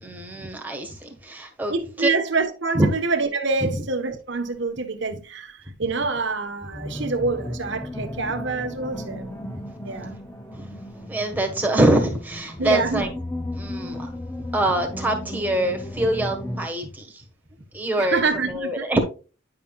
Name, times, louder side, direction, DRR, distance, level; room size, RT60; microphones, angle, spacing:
voice 1, 0.0-2.1 2.7-2.9 10.0-10.1 10.5-10.8 11.1-13.1 13.5-14.1 14.5-17.1 17.7-19.0, right 1 dB, 10° right, 1.3 m, -24 dB
voice 2, 1.7-9.3 9.8-10.1 12.6-13.1 18.0-18.9, right 3 dB, 55° right, 1.1 m, -26 dB
sound 1, 6.7-16.7, left 1 dB, 10° left, 0.5 m, -35 dB
10.0 x 5.8 x 2.3 m
head